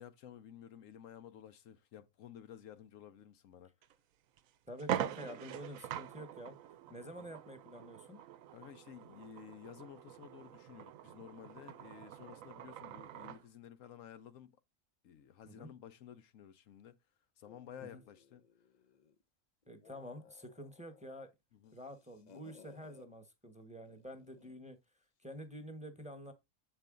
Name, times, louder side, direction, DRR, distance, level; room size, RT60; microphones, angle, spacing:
voice 1, 0.0-3.7 7.2-7.3 8.5-14.6 15.0-17.0 17.4-18.4 21.5-21.8, left 9 dB, 80° left, 1.1 m, -53 dB
sound 1, 3.8-3.9 4.4-4.5 4.8-13.4, right 11 dB, 90° right, 1.0 m, -44 dB
voice 2, 4.7-8.2 15.5-15.7 17.9-18.0 19.7-21.3 21.7-24.8 25.2-26.3, equal, 5° right, 1.0 m, -48 dB
sound 2, 17.4-19.2 19.6-21.3 21.6-23.1 23.9-24.6, left 6 dB, 50° left, 0.5 m, -62 dB
7.9 x 4.6 x 3.6 m
omnidirectional pair, 1.4 m